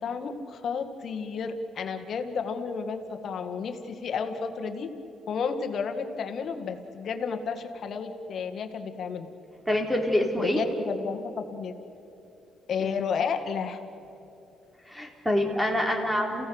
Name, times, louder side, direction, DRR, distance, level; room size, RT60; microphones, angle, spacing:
voice 1, 0.0-4.9 5.3-9.3 10.4-11.7 12.7-13.8, left 5 dB, 60° left, 6 dB, 1.9 m, -32 dB
voice 2, 9.7-10.6 14.9-16.5, left 1 dB, 5° right, 2 dB, 3.8 m, -26 dB
28.5 x 16.5 x 8.1 m, 2.9 s
cardioid pair, 90°, 0 cm